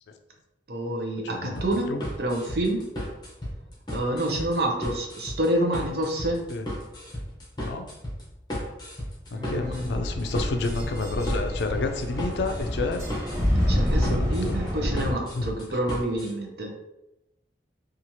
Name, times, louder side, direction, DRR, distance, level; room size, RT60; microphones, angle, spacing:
voice 1, 0.7-1.9 2.2-2.8 3.9-6.5 9.3-9.8 13.7-16.8, right 1 dB, 60° right, 1 dB, 0.6 m, -28 dB
voice 2, 1.2-2.0 6.5-6.6 7.6-7.9 9.3-13.1 14.1-14.6 15.1-15.5, left 3 dB, 70° left, 6 dB, 0.4 m, -30 dB
sound 1, 1.5-16.3, equal, 25° left, 0.6 m, -35 dB
sound 2, 9.6-15.1, equal, 45° right, 1.3 m, -27 dB
2.9 x 2.4 x 2.7 m, 0.89 s
head